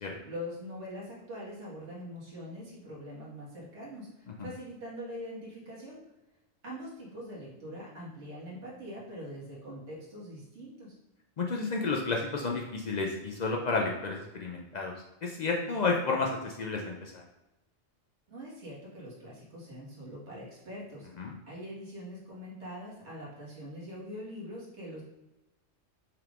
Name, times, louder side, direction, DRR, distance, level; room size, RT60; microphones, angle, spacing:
voice 1, 0.2-6.0 6.6-11.0 18.3-25.0, equal, 60° right, -6 dB, 1.8 m, -43 dB
voice 2, 11.4-14.9 15.2-17.2 21.2-21.4, left 4 dB, 85° left, 0 dB, 0.3 m, -31 dB
5.7 x 3.5 x 2.4 m, 1.0 s
omnidirectional pair, 1.3 m